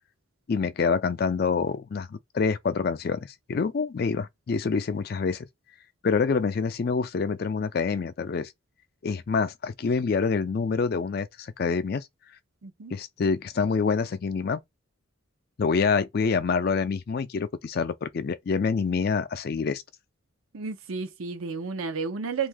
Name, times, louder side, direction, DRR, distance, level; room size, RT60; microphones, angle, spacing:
voice 1, 0.5-5.5 6.0-8.5 9.0-12.1 12.9-14.6 15.6-19.8, left 5 dB, 50° left, 0.4 m, -26 dB
voice 2, 12.6-12.9 20.5-22.5, right 5 dB, 90° right, 0.7 m, -32 dB
2.7 x 2.5 x 3.4 m
head